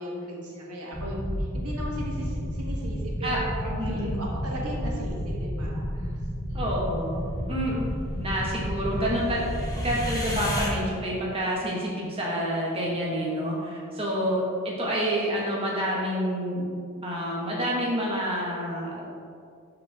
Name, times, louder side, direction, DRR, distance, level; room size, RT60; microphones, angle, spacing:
voice 1, 0.0-6.1 6.5-6.8, right 1 dB, 85° right, -2 dB, 1.5 m, -37 dB
sound 1, 0.9-10.7, equal, 15° left, 1.4 m, -31 dB
voice 2, 3.8-4.1 6.5-7.9 8.2-16.6 17.0-18.9, equal, 25° right, -5 dB, 1.8 m, -28 dB
12.0 x 4.7 x 3.7 m, 2.3 s
head